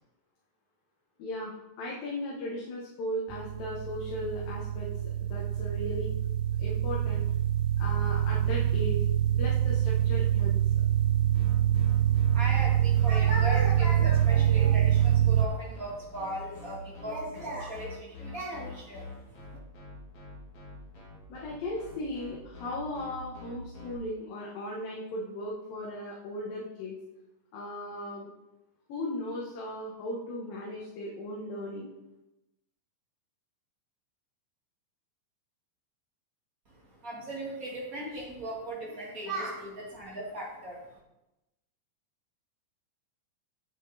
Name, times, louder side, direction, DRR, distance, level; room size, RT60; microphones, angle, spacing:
voice 1, 1.2-6.1 6.6-7.2 7.8-9.1 9.4-10.6 21.3-26.9 27.5-28.3 28.9-31.9, left 1 dB, 75° left, -3 dB, 3.0 m, -37 dB
sound 1, 3.3-15.5, right 10 dB, 80° right, 1.7 m, -25 dB
sound 2, 11.3-23.9, left 4 dB, 35° left, 2.8 m, -45 dB
voice 2, 12.1-19.6 36.9-40.8, right 1 dB, 30° right, -3 dB, 1.7 m, -37 dB
8.9 x 8.1 x 4.0 m, 0.94 s
omnidirectional pair, 4.1 m